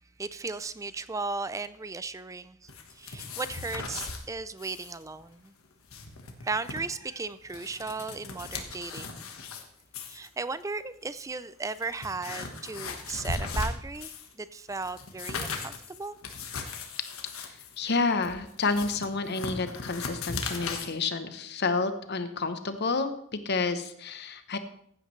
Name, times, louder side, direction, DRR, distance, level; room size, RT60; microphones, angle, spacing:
voice 1, 0.2-5.5 6.4-9.3 10.0-16.2, right 3 dB, 15° right, 0.3 m, -36 dB
sound 1, 2.7-4.2 4.6-4.9 5.2-5.3 5.7-6.8 7.3-9.6 9.9-10.3 11.0-11.1 11.6-14.3 14.7-20.9, left 3 dB, 90° left, 1.4 m, -37 dB
voice 2, 17.4-24.6, left 4 dB, 50° left, 0.9 m, -30 dB
15.0 x 9.0 x 3.2 m
head